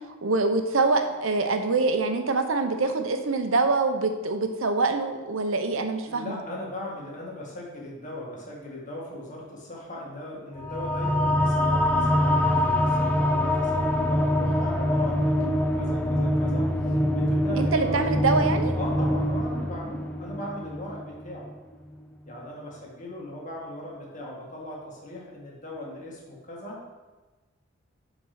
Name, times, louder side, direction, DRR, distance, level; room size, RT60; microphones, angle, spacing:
voice 1, 0.2-6.4 17.6-18.7, right 3 dB, 80° right, 6 dB, 0.9 m, -25 dB
voice 2, 6.1-21.5 22.3-26.8, left 1 dB, 40° left, -4 dB, 1.9 m, -38 dB
sound 1, 10.6-21.5, left 1 dB, 10° left, 0.5 m, -24 dB
6.8 x 5.2 x 6.0 m, 1.2 s
head